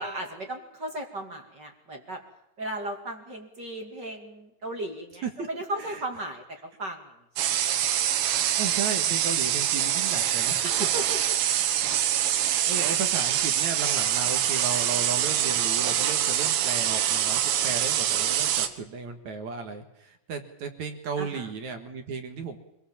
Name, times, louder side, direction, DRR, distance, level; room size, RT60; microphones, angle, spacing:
voice 1, 0.0-2.2 2.6-6.4 6.8-7.1 7.4-7.8 10.6-11.2 21.2-21.5, right 1 dB, 35° right, 3 dB, 2.0 m, -36 dB
sound 1, 7.4-18.7, right 10 dB, 85° right, 3.9 m, -25 dB
voice 2, 8.6-10.7 11.0-11.2 11.8-22.6, right 5 dB, 55° right, 6 dB, 2.2 m, -35 dB
26.5 x 20.0 x 7.3 m, 0.85 s
omnidirectional pair, 5.4 m